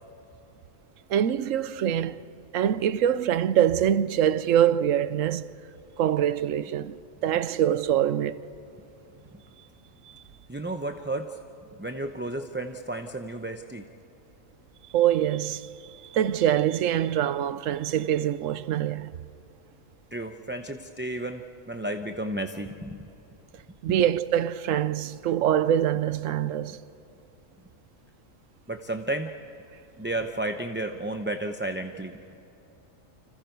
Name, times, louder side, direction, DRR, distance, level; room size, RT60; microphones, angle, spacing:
voice 1, 1.1-2.2 2.5-5.5 6.0-6.9 7.2-8.4 14.9-15.7 16.1-19.1 23.8-26.8, right 10 dB, 80° right, 1.1 m, -24 dB
voice 2, 10.5-11.4 11.8-13.8 20.1-23.1 23.9-24.0 28.7-29.3 30.0-32.1, right 1 dB, 10° right, 0.6 m, -32 dB
30.0 x 26.0 x 4.6 m
omnidirectional pair, 1.3 m